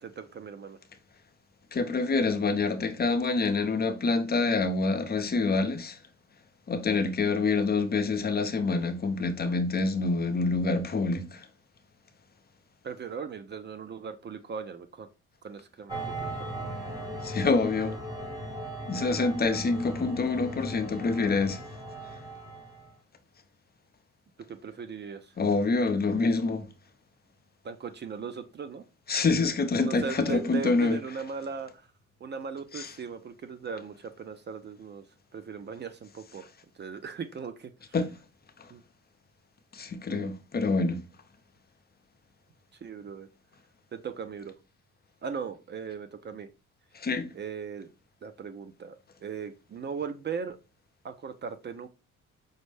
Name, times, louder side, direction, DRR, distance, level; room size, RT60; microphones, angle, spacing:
voice 1, 0.0-0.8 12.8-15.1 15.4-16.7 24.5-25.3 27.6-28.8 29.8-31.9 32.2-35.0 35.3-36.4 36.8-37.7 38.7-38.8 42.8-43.3 43.9-44.5 45.2-46.5 47.3-47.9 48.2-50.6 51.0-51.9, right 6 dB, 35° right, 0.4 m, -38 dB
voice 2, 1.7-6.0 6.7-11.4 17.2-18.0 18.9-21.6 25.4-26.7 29.1-31.0 32.7-32.9 37.9-38.1 39.7-41.0 46.9-47.3, left 3 dB, 30° left, 0.6 m, -26 dB
sound 1, 15.9-22.9, right 1 dB, 10° right, 1.1 m, -38 dB
5.2 x 2.1 x 3.2 m
cardioid pair, 90°, 30 cm